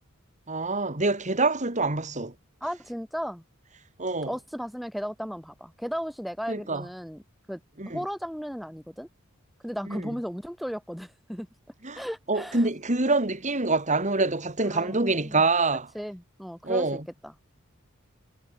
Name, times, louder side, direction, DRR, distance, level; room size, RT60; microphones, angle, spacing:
voice 1, 0.5-2.3 4.0-4.3 6.5-6.8 7.8-8.0 9.9-10.0 11.8-12.0 12.3-15.9 16.6-17.0, right 3 dB, 35° right, 3.3 m, -26 dB
voice 2, 2.6-3.4 4.3-7.2 7.5-7.6 7.8-9.1 9.6-11.5 11.9-12.6 14.7-15.4 15.9-16.9 17.2-17.3, equal, ahead, 2.2 m, -35 dB
head